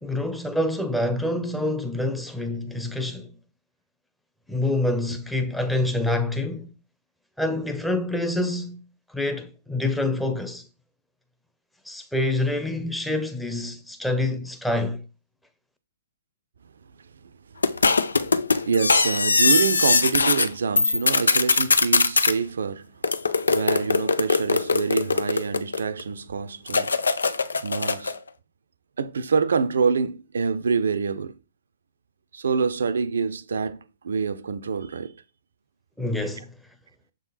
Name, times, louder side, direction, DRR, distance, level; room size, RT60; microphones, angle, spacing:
voice 1, 0.0-3.3 4.5-6.7 7.4-8.8 9.1-10.7 11.8-15.0 36.0-36.5, left 1 dB, 5° left, 0.9 m, -26 dB
sound 1, 17.6-20.5 20.8-22.3 23.0-26.0 26.7-28.2, left 4 dB, 80° left, 0.5 m, -21 dB
voice 2, 17.8-18.3 18.6-22.9 23.5-27.1 27.6-28.2 29.0-31.4 32.3-35.2, right 5 dB, 70° right, 0.6 m, -26 dB
7.1 x 3.9 x 4.1 m
figure-of-eight pair, 115°, 0 cm